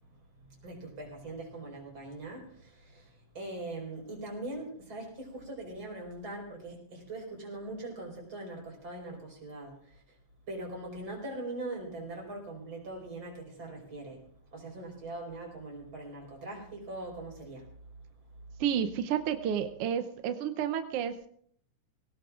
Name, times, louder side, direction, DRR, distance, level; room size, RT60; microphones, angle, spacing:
voice 1, 0.4-10.0 10.5-17.7, right 2 dB, 40° right, -1 dB, 5.5 m, -41 dB
voice 2, 18.6-21.3, right 9 dB, 75° right, 8 dB, 1.4 m, -31 dB
22.0 x 17.5 x 2.5 m, 0.63 s
omnidirectional pair, 3.5 m